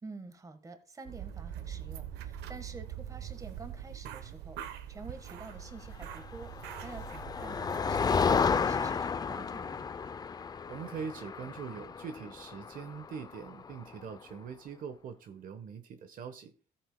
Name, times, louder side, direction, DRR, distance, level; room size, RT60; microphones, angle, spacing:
voice 1, 0.0-6.5 6.8-9.9, right 3 dB, 20° right, 1.3 m, -48 dB
sound 1, 1.1-8.2, right 10 dB, 80° right, 0.8 m, -43 dB
Motor vehicle (road), 6.2-14.0, left 5 dB, 25° left, 0.4 m, -32 dB
voice 2, 10.7-16.5, right 6 dB, 55° right, 1.0 m, -42 dB
13.5 x 8.9 x 2.2 m
cardioid pair, 110°, 17 cm